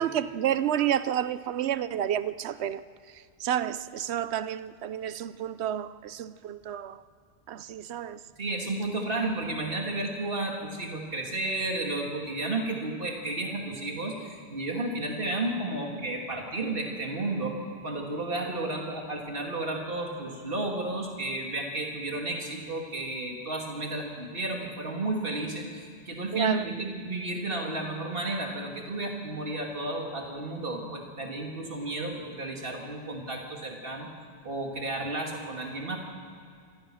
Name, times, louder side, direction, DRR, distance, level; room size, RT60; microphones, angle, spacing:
voice 1, 0.0-2.8 3.4-7.0 7.5-8.2 26.3-26.7, right 10 dB, 75° right, 0.9 m, -30 dB
voice 2, 8.4-17.5 17.8-34.1 34.4-36.0, right 2 dB, 55° right, 2.8 m, -32 dB
26.5 x 15.5 x 6.4 m
omnidirectional pair, 1.1 m